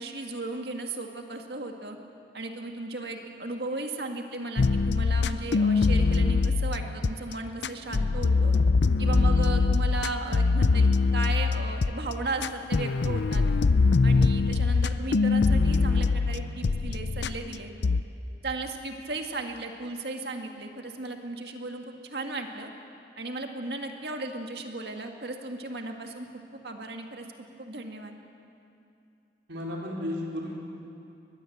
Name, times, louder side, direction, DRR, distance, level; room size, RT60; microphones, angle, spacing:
voice 1, 0.0-2.0 2.3-8.6 9.0-13.4 14.0-17.7 18.4-22.7 23.2-27.3 27.6-28.1, right 2 dB, 65° right, 3 dB, 2.0 m, -36 dB
sound 1, 4.6-7.3 7.6-11.9 12.4-17.6 17.8-18.0, left 4 dB, 80° left, 0.5 m, -23 dB
voice 2, 29.5-30.7, left 1 dB, 85° right, -2 dB, 4.2 m, -33 dB
22.5 x 20.5 x 7.9 m, 2.6 s
head